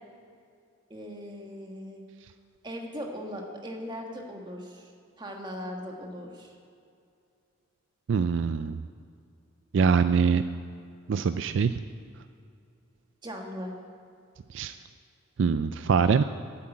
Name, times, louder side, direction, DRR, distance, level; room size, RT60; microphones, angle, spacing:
voice 1, 0.9-2.0 2.6-4.9 5.2-6.5 13.2-13.7, equal, 20° right, 1 dB, 1.5 m, -39 dB
voice 2, 8.1-8.8 9.7-10.4 11.1-11.8 14.5-14.8 15.4-16.2, right 5 dB, 60° right, 11 dB, 0.3 m, -23 dB
11.5 x 8.5 x 8.9 m, 2.4 s
head